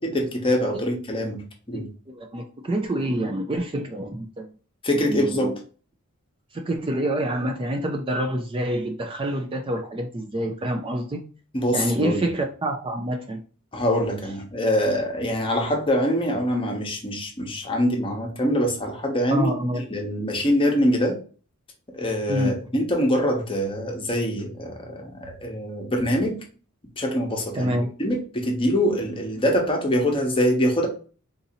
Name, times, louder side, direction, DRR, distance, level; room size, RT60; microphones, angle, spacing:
voice 1, 0.0-1.9 4.8-5.5 11.5-12.2 13.7-21.2 21.9-26.4 27.0-30.9, equal, 25° left, 1 dB, 0.9 m, -24 dB
voice 2, 1.7-4.5 4.9-5.5 6.5-11.2 11.7-13.4 19.3-19.8 22.3-22.5 27.5-27.9, right 1 dB, 25° right, 3 dB, 0.4 m, -27 dB
3.8 x 2.7 x 2.7 m, 0.38 s
head